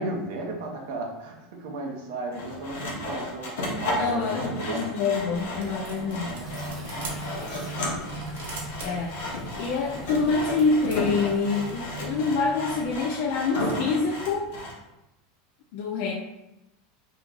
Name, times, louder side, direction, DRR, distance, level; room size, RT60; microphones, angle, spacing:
voice 1, 0.0-4.9 5.6-8.2, right 3 dB, 60° right, 1 dB, 0.7 m, -36 dB
Sawing, 2.3-14.8, left 1 dB, 75° left, 0.9 m, -34 dB
voice 2, 4.0-6.4 8.8-9.2 9.6-14.5 15.7-16.1, left 4 dB, 50° left, 0 dB, 0.3 m, -26 dB
sound 1, 5.3-11.1, right 2 dB, 90° right, 1.1 m, -44 dB
sound 2, 6.3-13.0, right 2 dB, 15° right, 0.8 m, -40 dB
3.0 x 2.4 x 3.7 m, 0.96 s
supercardioid pair, 175°, 0 cm